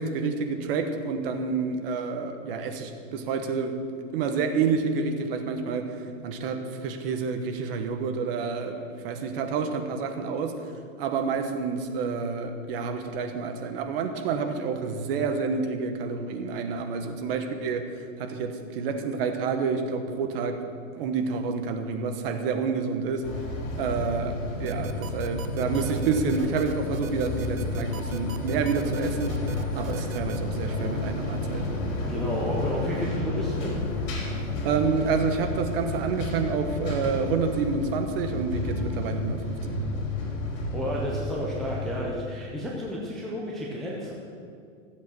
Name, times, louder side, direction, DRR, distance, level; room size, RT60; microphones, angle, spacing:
voice 1, 0.0-3.7 4.1-10.6 11.0-20.6 20.9-23.3 23.8-29.5 29.7-31.7 34.6-39.8, right 5 dB, 45° right, 6 dB, 1.3 m, -29 dB
sound 1, 23.2-42.0, left 2 dB, 70° left, 3.5 m, -31 dB
sound 2, 24.7-30.4, right 8 dB, 80° right, 0.9 m, -40 dB
voice 2, 32.1-33.8 40.7-44.1, equal, ahead, -5 dB, 0.4 m, -31 dB
14.0 x 8.1 x 6.2 m, 2.3 s
hypercardioid pair, 155°, 40 cm